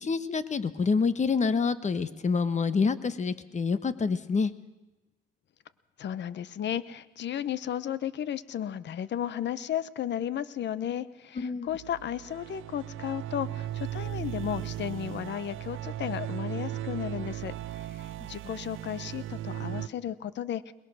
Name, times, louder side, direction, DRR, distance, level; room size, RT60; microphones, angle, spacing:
voice 1, 0.0-4.5 11.4-11.7, left 5 dB, 35° left, 13 dB, 1.3 m, -27 dB
voice 2, 6.0-20.7, left 10 dB, 65° left, 16 dB, 0.9 m, -34 dB
sound 1, 11.7-19.9, right 13 dB, 85° right, 0.6 m, -37 dB
22.0 x 21.0 x 6.4 m, 1.1 s
cardioid pair, 90°, 20 cm